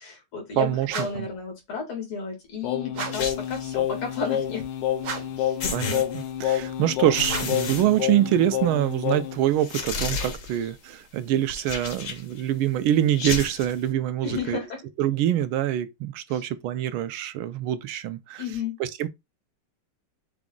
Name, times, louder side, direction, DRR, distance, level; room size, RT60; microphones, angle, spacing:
voice 1, 0.0-4.6 5.4-5.6 14.2-14.8 16.3-16.4 18.4-18.8, left 5 dB, 90° left, 2.9 m, -33 dB
voice 2, 0.6-1.3 5.7-14.6 15.0-18.4 18.8-19.1, right 12 dB, 80° right, 1.4 m, -25 dB
sound 1, 0.8-1.3 2.9-3.4 5.0-5.5 7.2-7.7, right 5 dB, 55° right, 0.9 m, -35 dB
Singing, 2.6-9.5, left 11 dB, 75° left, 1.1 m, -29 dB
sound 2, 3.1-3.7 5.1-5.2 5.6-6.6 7.1-8.6 8.9-9.0 9.6-10.7 11.5-12.4 13.1-13.8, left 4 dB, 55° left, 0.9 m, -32 dB
6.0 x 2.3 x 3.7 m
omnidirectional pair, 2.3 m